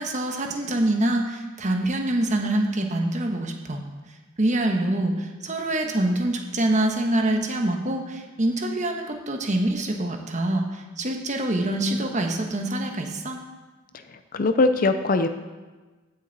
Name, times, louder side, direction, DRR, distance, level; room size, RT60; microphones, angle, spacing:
voice 1, 0.0-3.8 4.4-13.4, right 1 dB, 35° right, 3 dB, 1.2 m, -25 dB
voice 2, 14.1-15.3, left 3 dB, 45° left, 9 dB, 0.5 m, -21 dB
16.0 x 6.9 x 4.1 m, 1.3 s
head